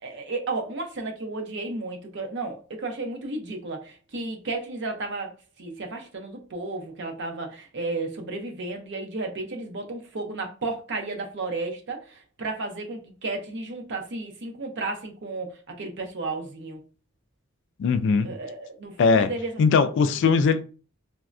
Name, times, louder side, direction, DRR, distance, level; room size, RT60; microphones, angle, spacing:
voice 1, 0.0-16.8 18.2-19.5 20.0-20.1, right 3 dB, 60° right, 0.6 m, -33 dB
voice 2, 17.8-18.3 19.0-19.3 19.6-20.6, left 5 dB, 60° left, 0.3 m, -20 dB
3.4 x 2.1 x 2.5 m
head